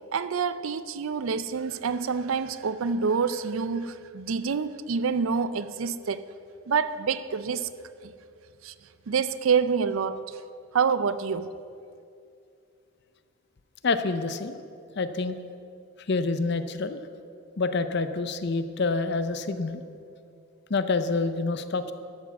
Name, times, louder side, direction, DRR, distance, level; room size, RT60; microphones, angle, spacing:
voice 1, 0.1-6.2 6.7-7.7 8.0-8.1 8.6-8.7 9.1-10.4 10.7-11.5, right 5 dB, 70° right, 0.5 m, -27 dB
voice 2, 13.8-14.6 15.0-15.4 16.1-17.0 17.6-19.8 20.7-21.9, left 3 dB, 50° left, 0.6 m, -27 dB
12.5 x 7.3 x 7.0 m
head